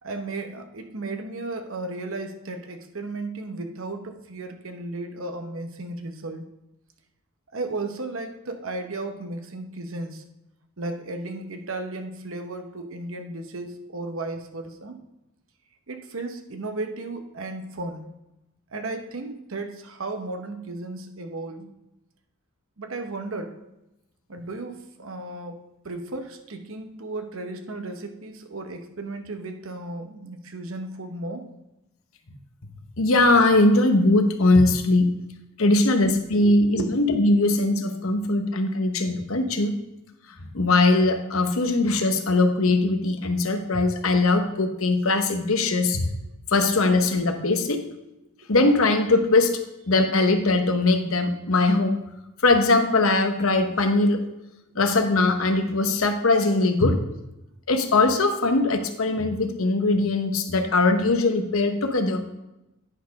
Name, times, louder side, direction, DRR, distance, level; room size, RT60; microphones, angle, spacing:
voice 1, 0.0-6.5 7.5-10.2 10.8-15.0 15.9-18.1 18.7-21.7 22.8-23.6 24.3-25.6 25.8-31.5 36.3-36.9, right 2 dB, 70° right, 5 dB, 0.9 m, -34 dB
voice 2, 33.0-35.1 35.6-39.7 40.5-46.1 46.5-47.8 48.5-49.5 49.9-52.0 52.4-54.2 54.7-57.0 57.7-62.2, left 2 dB, 75° left, 6 dB, 0.9 m, -21 dB
9.9 x 4.4 x 5.3 m, 0.92 s
head